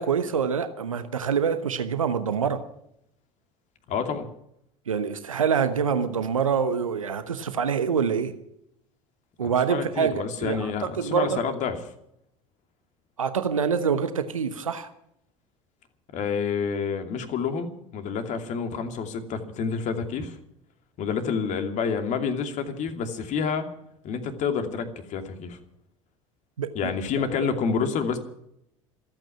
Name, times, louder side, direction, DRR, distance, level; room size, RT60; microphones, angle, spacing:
voice 1, 0.0-2.6 4.9-8.3 9.4-11.4 13.2-14.9 26.6-26.7, right 6 dB, 85° right, 10 dB, 1.1 m, -25 dB
voice 2, 3.9-4.3 9.4-11.8 16.1-20.4 21.0-23.7 24.0-25.6 26.7-28.2, left 6 dB, 45° left, 6 dB, 2.7 m, -28 dB
27.0 x 9.1 x 5.9 m, 0.75 s
figure-of-eight pair, 70°, 17 cm